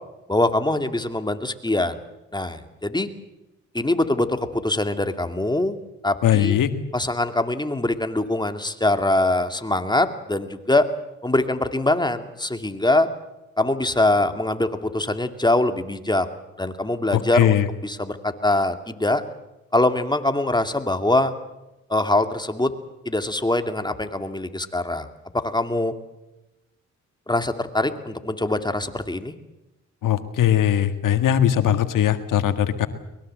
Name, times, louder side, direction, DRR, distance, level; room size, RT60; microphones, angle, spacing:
voice 1, 0.3-2.0 2.3-3.1 3.7-5.8 6.0-6.6 6.9-10.8 11.2-13.1 13.6-16.3 16.6-19.2 19.7-21.3 21.9-22.7 23.1-25.1 25.4-25.9 27.3-29.3, left 2 dB, 15° left, 7 dB, 2.4 m, -23 dB
voice 2, 6.2-6.7 17.1-17.7 30.0-32.9, left 11 dB, 80° left, 9 dB, 1.9 m, -20 dB
23.0 x 21.5 x 7.7 m, 0.97 s
supercardioid pair, 60°, 31 cm